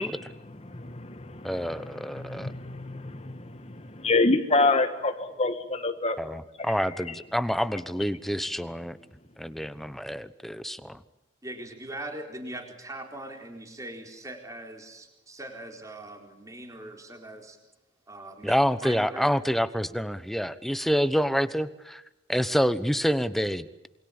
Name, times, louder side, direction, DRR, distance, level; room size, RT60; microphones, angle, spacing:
voice 1, 0.0-6.2 6.6-7.2 8.4-8.5, left 3 dB, 35° left, 9 dB, 1.5 m, -28 dB
voice 2, 1.4-2.5 6.2-9.0 9.4-11.0 18.4-22.0 22.3-23.7, equal, ahead, 13 dB, 1.0 m, -27 dB
voice 3, 11.4-17.6 18.1-18.5 18.8-19.3, right 1 dB, 15° right, 4 dB, 4.2 m, -41 dB
28.0 x 23.5 x 8.8 m, 0.92 s
head